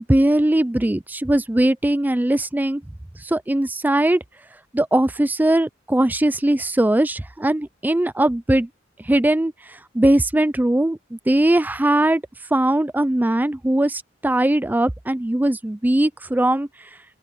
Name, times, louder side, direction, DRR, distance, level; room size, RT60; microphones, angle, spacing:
voice 1, 0.0-2.8 3.2-4.2 4.7-8.7 9.0-9.5 9.9-12.2 12.5-16.7, right 1 dB, 10° right, 0.4 m, -20 dB
open air
head